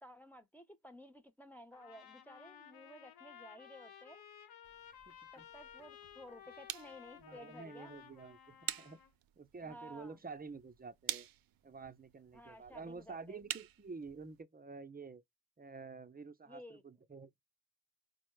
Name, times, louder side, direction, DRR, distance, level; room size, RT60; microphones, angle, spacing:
voice 1, 0.0-4.2 5.3-7.9 9.6-10.2 12.3-13.4 16.5-16.8, equal, 5° left, 0.9 m, -55 dB
Trumpet, 1.7-9.1, left 9 dB, 75° left, 0.9 m, -56 dB
sound 1, 4.6-14.4, right 13 dB, 65° right, 0.5 m, -48 dB
voice 2, 5.1-5.4 7.2-9.0 9.4-11.3 11.6-15.2 15.6-17.3, right 4 dB, 25° right, 0.7 m, -49 dB
4.2 x 2.2 x 3.1 m
supercardioid pair, 50°, 37 cm